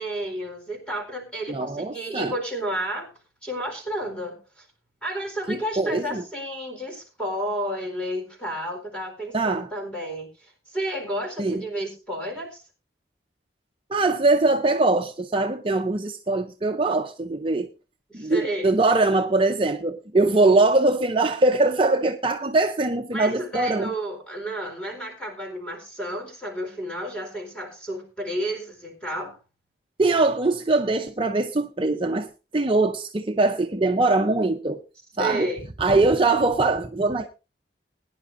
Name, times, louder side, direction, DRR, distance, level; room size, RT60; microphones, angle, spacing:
voice 1, 0.0-3.1 3.4-4.7 5.0-12.6 18.1-18.8 23.1-29.4 35.2-35.7, equal, 5° left, 4.1 m, -31 dB
voice 2, 1.5-2.3 5.5-6.2 9.3-9.7 11.4-11.6 13.9-17.7 18.1-23.9 30.0-32.3 32.5-34.8 35.2-35.5 35.8-37.3, right 2 dB, 30° right, 0.7 m, -22 dB
20.5 x 10.5 x 2.6 m
head